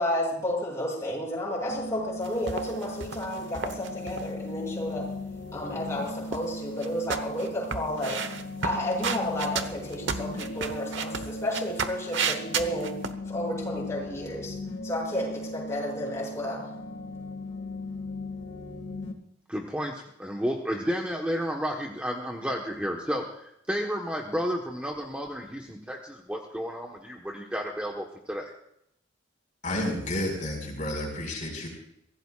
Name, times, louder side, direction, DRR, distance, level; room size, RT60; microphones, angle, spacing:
voice 1, 0.0-5.1 5.5-8.2 8.6-13.0 13.3-14.5 14.8-16.7, left 1 dB, 15° left, -4 dB, 7.4 m, -31 dB
sound 1, 1.7-19.1, left 2 dB, 65° left, 2.1 m, -38 dB
sound 2, 2.2-4.2 5.9-6.6 6.8-13.1, right 6 dB, 65° right, 1.1 m, -32 dB
voice 2, 19.5-28.5, equal, 5° right, 0 dB, 1.2 m, -32 dB
voice 3, 29.6-31.7, left 1 dB, 40° left, 1 dB, 4.8 m, -31 dB
24.0 x 16.5 x 2.5 m, 0.76 s
head